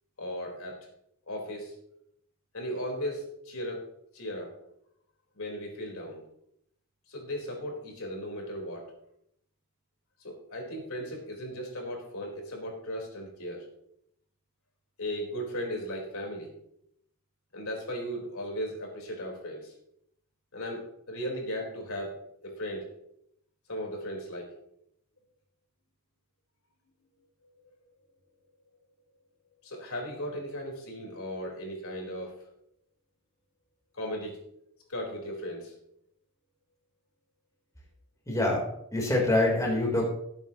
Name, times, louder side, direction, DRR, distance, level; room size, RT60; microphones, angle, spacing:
voice 1, 0.2-0.9 1.3-1.8 2.5-3.9 4.1-4.5 5.3-6.2 7.1-8.9 10.2-13.7 15.0-16.5 17.5-19.7 20.5-22.9 23.7-24.5 29.6-32.4 33.9-34.4 34.9-35.7, equal, 80° left, 0 dB, 4.3 m, -36 dB
voice 2, 38.3-38.6 38.9-40.0, left 2 dB, 15° left, -2 dB, 3.7 m, -25 dB
19.5 x 9.0 x 3.0 m, 0.73 s
head